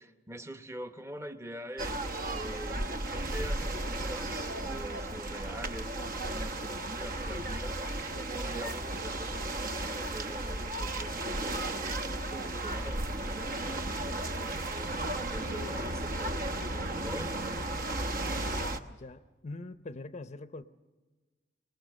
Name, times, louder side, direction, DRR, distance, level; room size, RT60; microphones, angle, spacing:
voice 1, 0.0-2.0 2.3-5.9 6.3-7.8 8.3-14.9 15.3-17.5, equal, 15° right, 10 dB, 0.9 m, -45 dB
sound 1, 1.8-18.8, right 2 dB, 55° right, 1.0 m, -34 dB
voice 2, 19.0-20.6, left 2 dB, 40° left, 12 dB, 0.6 m, -43 dB
22.5 x 20.0 x 6.6 m, 1.3 s
head